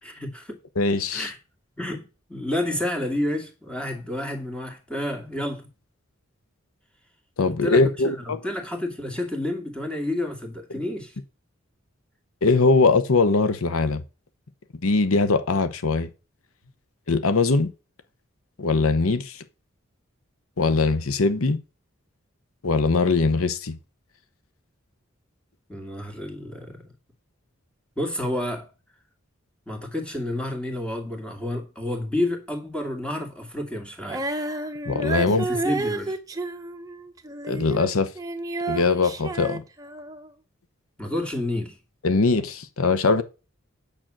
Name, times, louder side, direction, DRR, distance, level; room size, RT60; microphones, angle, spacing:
voice 1, 0.0-0.6 1.1-1.4 1.8-2.0 2.3-5.7 7.5-11.2 25.7-26.8 28.0-28.7 29.7-34.3 35.2-36.2 41.0-41.8, left 1 dB, 5° left, 2.1 m, -30 dB
voice 2, 0.8-1.3 7.4-8.4 12.4-14.0 14.8-16.1 17.1-17.7 18.6-19.4 20.6-21.6 22.6-23.8 34.8-35.5 37.5-38.1 38.7-39.6 42.0-43.2, left 3 dB, 85° left, 0.9 m, -21 dB
Female singing, 34.0-37.9 38.2-40.3, right 2 dB, 15° right, 0.9 m, -31 dB
9.0 x 6.0 x 7.5 m
head